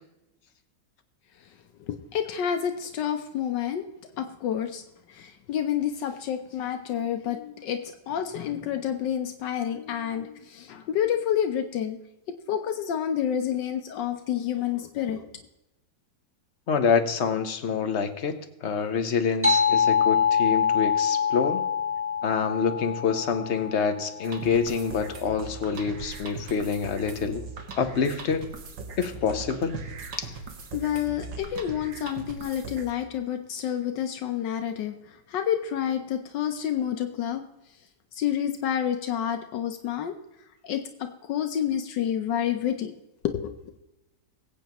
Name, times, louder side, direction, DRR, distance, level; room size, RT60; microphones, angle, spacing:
voice 1, 1.9-3.8 4.2-4.8 5.1-12.0 12.5-15.3 30.7-34.9 35.3-37.4 38.2-40.1 40.6-42.9 43.2-43.8, left 9 dB, 80° left, 6 dB, 1.4 m, -29 dB
voice 2, 16.7-18.4 18.6-21.6 22.2-27.4 27.8-28.5 29.0-29.8 30.2-30.3, left 6 dB, 50° left, 8 dB, 1.0 m, -26 dB
sound 1, 19.4-24.4, left 7 dB, 5° right, 1.8 m, -25 dB
sound 2, 24.2-32.9, right 4 dB, 90° right, 2.0 m, -40 dB
22.0 x 8.3 x 3.0 m, 0.96 s
omnidirectional pair, 1.9 m